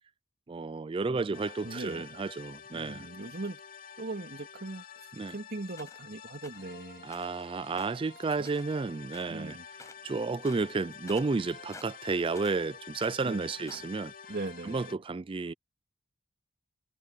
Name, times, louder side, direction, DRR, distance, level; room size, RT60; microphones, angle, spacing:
voice 1, 0.5-3.1 5.2-5.3 7.0-9.6 10.0-14.1 14.6-15.5, right 4 dB, 25° right, 0.4 m, -32 dB
voice 2, 1.1-2.1 2.7-3.6 4.0-4.8 5.3-7.1 8.4-8.5 9.3-9.6 13.2-13.8 14.3-14.8, right 2 dB, 50° right, 2.4 m, -40 dB
sound 1, 1.3-14.9, left 7 dB, 45° left, 2.5 m, -49 dB
sound 2, 5.8-6.1 6.4-6.7 7.1-7.4 7.7-8.8 9.1-9.4 9.7-10.1 10.4-12.6 12.9-14.0, left 3 dB, 15° left, 7.0 m, -52 dB
head